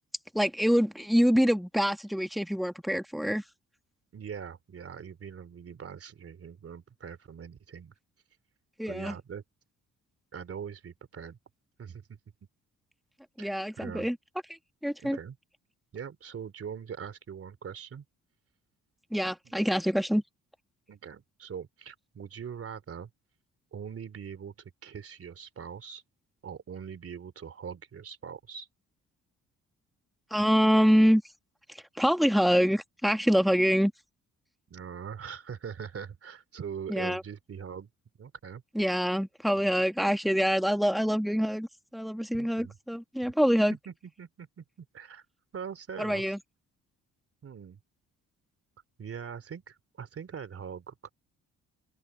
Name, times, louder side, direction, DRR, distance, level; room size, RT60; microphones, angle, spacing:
voice 1, 0.3-3.4 8.8-9.1 13.4-14.2 14.8-15.2 19.1-20.2 30.3-31.2 31.7-33.9 36.9-37.2 38.7-41.7 41.9-43.8 46.0-46.4, equal, ahead, 1.6 m, -25 dB
voice 2, 4.1-7.9 8.9-9.4 10.3-11.4 11.8-12.2 13.4-14.1 15.0-15.4 15.9-18.0 19.5-19.6 20.9-23.1 23.7-26.0 26.4-28.7 34.7-37.9 38.2-38.6 42.3-42.7 43.7-45.2 45.5-46.3 47.4-47.8 49.0-51.1, right 7 dB, 50° right, 3.1 m, -42 dB
open air
cardioid pair, 90°, 30 cm